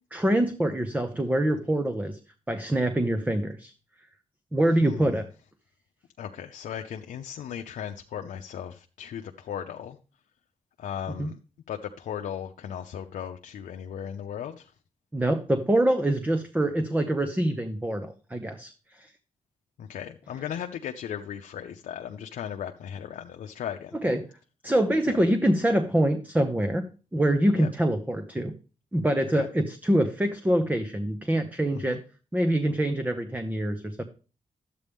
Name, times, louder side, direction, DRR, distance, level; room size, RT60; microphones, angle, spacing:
voice 1, 0.1-2.2 2.5-3.7 4.5-5.3 11.1-11.3 15.1-18.7 19.0-19.1 23.9-24.3 24.6-28.5 28.9-32.0 32.3-34.0, right 1 dB, 10° right, 7 dB, 0.9 m, -25 dB
voice 2, 6.2-10.0 10.8-11.3 11.7-14.6 19.8-23.9 27.6-27.7 29.4-29.5 31.9-32.0, left 9 dB, 80° left, 4 dB, 0.6 m, -36 dB
11.5 x 8.3 x 3.5 m, 0.36 s
cardioid pair, 75°, 13 cm